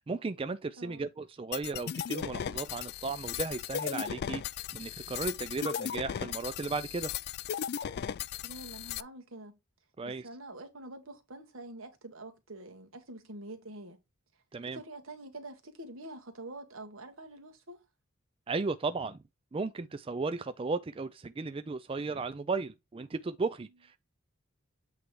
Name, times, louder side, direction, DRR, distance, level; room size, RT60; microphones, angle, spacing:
voice 1, 0.0-4.4 4.7-7.1 10.0-10.3 14.5-14.8 18.5-19.2 19.5-24.0, right 3 dB, 25° right, 0.4 m, -35 dB
voice 2, 0.8-1.1 8.4-9.6 10.0-14.0 14.6-17.8, right 2 dB, 75° right, 1.7 m, -46 dB
sound 1, 1.5-9.0, left 9 dB, 50° left, 0.3 m, -37 dB
8.3 x 3.3 x 4.6 m
head